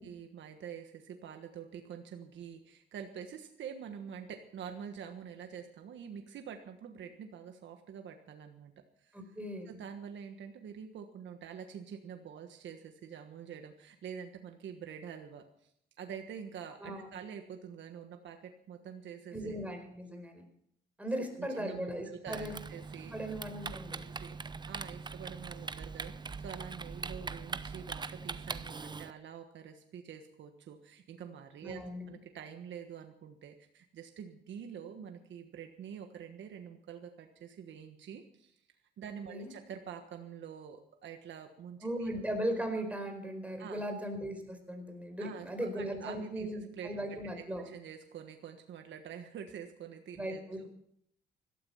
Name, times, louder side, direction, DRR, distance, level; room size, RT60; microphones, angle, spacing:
voice 1, 0.0-8.7 9.0-9.2 9.6-15.7 16.0-19.6 21.4-23.1 24.0-31.8 32.1-38.6 39.0-42.1 43.6-43.8 45.2-50.7, right 8 dB, 65° right, 5 dB, 1.4 m, -46 dB
voice 2, 9.1-9.7 16.8-17.1 19.3-20.4 21.0-22.5 23.1-24.0 31.6-32.1 39.3-39.5 41.8-47.7 50.1-50.7, equal, 5° right, 4 dB, 4.6 m, -38 dB
Typing, 22.3-29.1, right 4 dB, 20° right, 0.7 m, -42 dB
17.0 x 13.0 x 5.6 m, 0.71 s
cardioid pair, 90°, 20 cm